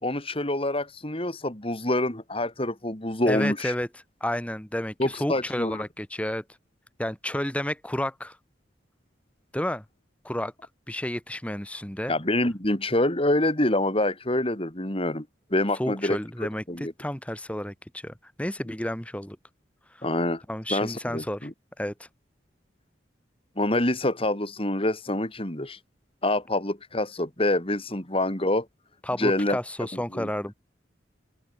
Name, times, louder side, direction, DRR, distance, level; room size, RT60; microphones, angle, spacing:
voice 1, 0.0-3.7 5.0-5.8 12.1-15.3 15.5-16.2 16.7-16.9 20.0-20.4 20.7-21.5 23.6-25.8 26.2-28.7 29.2-29.6 30.1-30.3, left 1 dB, 30° left, 3.5 m, -26 dB
voice 2, 3.3-3.9 4.2-6.4 7.0-8.4 9.5-9.8 10.2-10.5 10.9-12.1 15.8-19.4 20.0-20.1 20.5-21.5 21.8-22.1 29.0-30.5, left 1 dB, 5° left, 1.8 m, -31 dB
open air
head